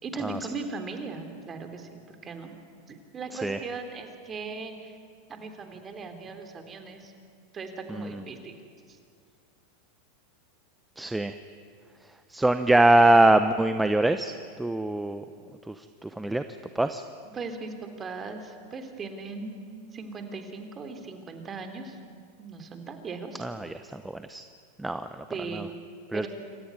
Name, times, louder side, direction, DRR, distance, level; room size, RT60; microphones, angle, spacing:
voice 1, 0.0-2.5 2.9-5.0 5.3-7.1 7.5-8.5 8.9-9.0 17.3-19.7 19.9-22.0 22.4-23.4 25.3-25.7 26.1-26.3, right 4 dB, 25° right, 6 dB, 3.3 m, -38 dB
voice 2, 7.9-8.2 11.0-11.3 12.3-14.3 14.6-15.2 15.7-16.4 16.7-17.0 23.4-24.4 24.8-25.2 25.5-25.7 26.1-26.3, right 2 dB, 5° right, 9 dB, 0.8 m, -23 dB
27.5 x 14.5 x 9.7 m, 2.2 s
hypercardioid pair, 110°, 0 cm